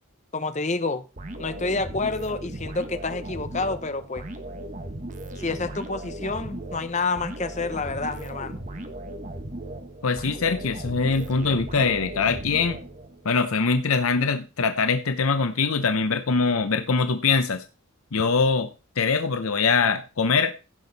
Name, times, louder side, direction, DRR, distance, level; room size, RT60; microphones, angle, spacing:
voice 1, 0.3-1.0 1.4-4.2 5.4-8.6, left 3 dB, 35° left, 0.9 m, -28 dB
sound 1, 1.2-13.3, right 1 dB, 35° right, 1.3 m, -37 dB
voice 2, 10.0-12.8 13.2-17.6 18.1-18.7 19.0-20.5, left 4 dB, 75° left, 0.8 m, -23 dB
16.0 x 6.2 x 4.1 m
head